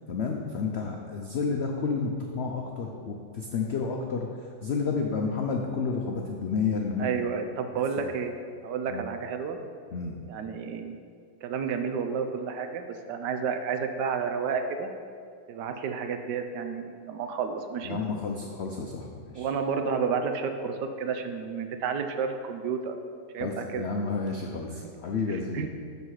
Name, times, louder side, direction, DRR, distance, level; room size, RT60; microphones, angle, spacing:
voice 1, 0.1-7.3 8.0-8.1 8.9-9.0 9.9-10.2 17.8-19.5 23.4-25.7, left 4 dB, 85° left, 1 dB, 0.5 m, -31 dB
voice 2, 7.0-8.3 8.6-9.7 10.3-11.0 11.4-14.9 15.5-18.0 19.4-23.0 23.3-23.9 25.3-25.7, right 6 dB, 75° right, 6 dB, 1.3 m, -31 dB
12.0 x 4.1 x 4.8 m, 2.2 s
omnidirectional pair, 1.9 m